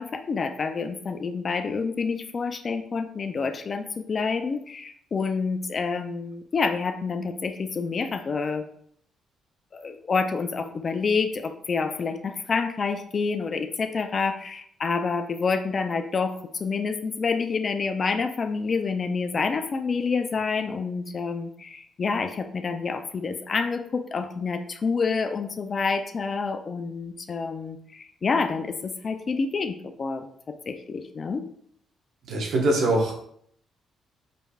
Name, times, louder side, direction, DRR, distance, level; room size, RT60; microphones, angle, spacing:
voice 1, 0.0-8.7 9.7-30.3 30.7-31.4, left 4 dB, 40° left, 8 dB, 0.4 m, -28 dB
voice 2, 32.3-33.3, right 1 dB, 70° right, 0 dB, 1.1 m, -23 dB
5.1 x 3.2 x 2.3 m, 0.66 s
cardioid pair, 90°, 0 cm